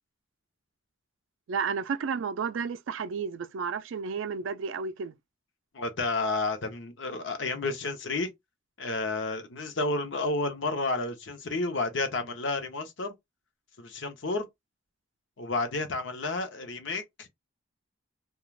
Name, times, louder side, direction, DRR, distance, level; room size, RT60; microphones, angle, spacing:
voice 1, 1.5-5.2, right 5 dB, 70° right, 0.3 m, -32 dB
voice 2, 5.7-8.3 8.8-13.1 13.8-14.5 15.4-17.3, left 3 dB, 65° left, 0.7 m, -31 dB
2.3 x 2.3 x 3.1 m
head